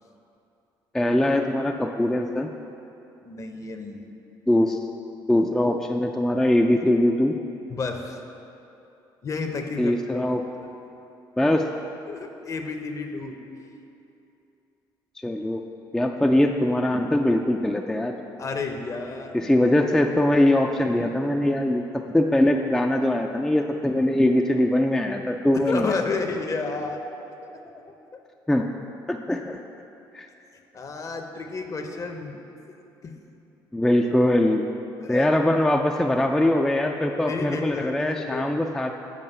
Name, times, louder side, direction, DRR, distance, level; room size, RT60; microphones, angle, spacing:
voice 1, 0.9-2.5 4.5-4.8 5.3-7.4 9.8-10.4 11.4-11.6 15.2-15.6 15.9-18.1 19.3-26.0 28.5-28.7 29.1-29.6 30.1-30.3 33.7-34.6 35.1-39.0, left 1 dB, 5° left, 2 dB, 0.4 m, -22 dB
voice 2, 3.2-4.0 7.7-8.2 9.2-10.2 12.1-13.4 18.4-19.4 25.5-27.0 27.4-27.8 30.7-32.4 33.0-33.2 35.0-35.3 37.3-38.5, left 4 dB, 40° left, 5 dB, 0.7 m, -31 dB
7.4 x 4.6 x 5.5 m, 2.8 s
supercardioid pair, 80°, 9 cm